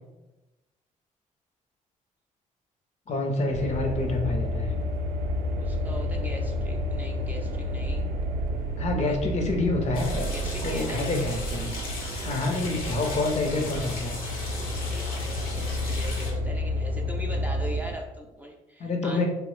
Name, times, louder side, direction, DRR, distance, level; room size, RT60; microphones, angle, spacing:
voice 1, 3.1-4.7 8.8-11.8 12.2-14.2 18.8-19.3, left 2 dB, 50° left, 2 dB, 0.6 m, -27 dB
sound 1, 3.5-18.0, left 1 dB, 80° right, 0.4 m, -30 dB
voice 2, 5.6-8.0 9.0-9.2 10.3-11.0 14.6-19.2, right 1 dB, 10° right, 1 dB, 0.4 m, -40 dB
sound 2, 9.9-16.3, left 2 dB, 80° left, 0.8 m, -38 dB
3.0 x 2.0 x 3.0 m, 1.0 s
cardioid pair, 90°, 14 cm